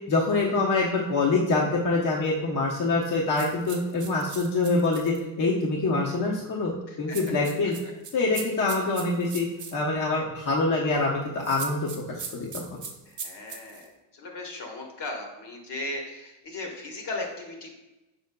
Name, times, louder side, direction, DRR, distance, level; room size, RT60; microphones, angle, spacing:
voice 1, 0.1-6.7 7.0-7.7 8.1-9.5 9.7-12.6, left 3 dB, 40° left, -3 dB, 0.8 m, -25 dB
sound 1, 3.3-5.2 7.1-9.8 11.4-13.9, right 5 dB, 40° right, 0.9 m, -39 dB
voice 2, 6.9-7.2 7.8-7.9 10.7-10.9 13.1-17.7, left 2 dB, 55° left, 1 dB, 1.3 m, -37 dB
5.3 x 4.3 x 2.2 m, 1.0 s
supercardioid pair, 75°, 48 cm